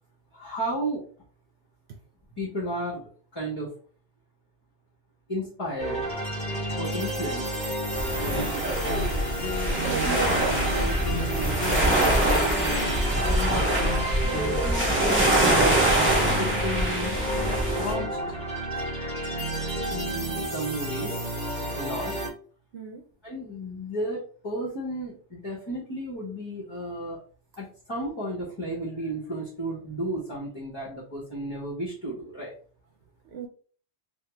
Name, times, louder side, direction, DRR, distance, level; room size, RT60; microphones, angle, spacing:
voice 1, 0.3-1.0 2.4-3.0 3.3-3.7 5.3-6.0 6.8-7.5 8.2-9.1 9.9-12.9 13.3-13.6 14.2-17.2 17.7-18.1 18.7-18.8 19.9-21.2 21.7-22.2 23.2-27.2 27.6-32.5, right 1 dB, 25° left, -4 dB, 0.9 m, -33 dB
sound 1, 5.8-22.3, right 1 dB, 5° left, 1.2 m, -31 dB
sound 2, 7.9-17.9, right 1 dB, 10° right, 0.8 m, -24 dB
sound 3, 8.1-9.1 9.4-9.8 10.2-10.8 11.1-11.3 11.6-12.0 12.4-16.8, left 3 dB, 65° left, 0.8 m, -36 dB
voice 2, 9.3-10.1 14.2-14.5 22.7-23.0 33.2-33.5, right 5 dB, 70° right, 2 dB, 0.8 m, -37 dB
3.5 x 2.3 x 3.1 m, 0.42 s
omnidirectional pair, 1.2 m